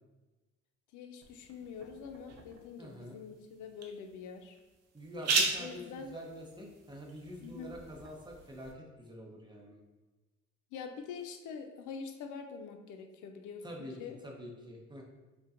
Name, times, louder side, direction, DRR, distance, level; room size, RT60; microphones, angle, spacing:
voice 1, 0.9-4.6 5.6-6.2 7.4-7.7 10.7-14.2, left 6 dB, 75° left, 6 dB, 0.5 m, -45 dB
sound 1, 1.2-8.7, right 4 dB, 55° right, 0.6 m, -38 dB
voice 2, 2.8-3.2 4.9-9.8 13.6-14.0 14.2-15.0, equal, 15° right, -1 dB, 0.7 m, -46 dB
5.2 x 2.2 x 2.5 m, 1.2 s
cardioid pair, 90°, 30 cm